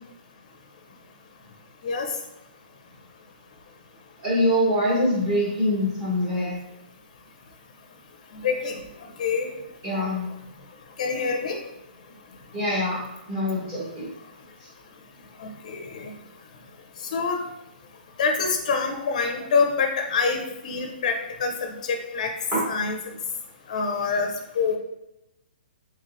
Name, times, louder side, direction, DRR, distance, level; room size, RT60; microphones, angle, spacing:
voice 1, 4.2-6.5 9.8-10.3 12.5-14.0 22.5-22.6, equal, 15° right, -8 dB, 1.4 m, -24 dB
voice 2, 8.4-8.8 9.2-9.5 9.9-10.1 11.0-11.6 15.4-16.1 17.1-17.4 18.2-22.3 22.7-23.0 23.7-24.8, left 5 dB, 45° left, 3 dB, 0.6 m, -26 dB
3.9 x 3.7 x 2.6 m, 0.90 s
hypercardioid pair, 170°, 5 cm